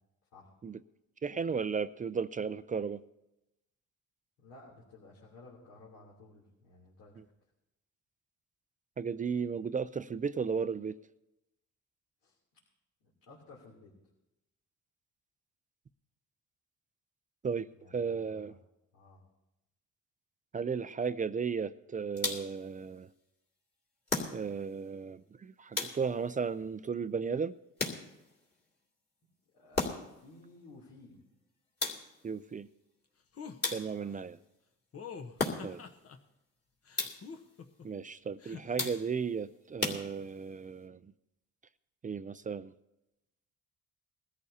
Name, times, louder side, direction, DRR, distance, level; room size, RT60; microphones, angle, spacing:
voice 1, 1.2-3.0 7.2-7.3 9.0-11.0 17.4-18.6 20.5-23.1 24.3-27.5 32.2-32.7 33.7-34.4 35.6-35.8 37.8-41.0 42.0-42.7, right 6 dB, 25° right, 14 dB, 0.4 m, -35 dB
voice 2, 4.4-7.1 12.2-12.4 13.3-13.9 17.7-18.5 18.9-19.2 29.5-31.1 33.8-34.2 35.5-35.8, left 2 dB, 75° left, -5 dB, 3.2 m, -55 dB
sound 1, 22.2-22.7 24.1-24.7 25.7-26.3 27.8-28.4 29.7-30.3 31.8-32.3 33.6-34.2 35.4-35.9 36.9-37.4 38.8-39.3 39.8-40.5, left 2 dB, 35° left, 2.7 m, -36 dB
sound 2, 33.3-33.6 34.9-36.2 36.9-37.9 38.4-38.9, left 6 dB, 50° left, 1.1 m, -45 dB
21.5 x 13.5 x 2.8 m, 0.91 s
cardioid pair, 90°, 30 cm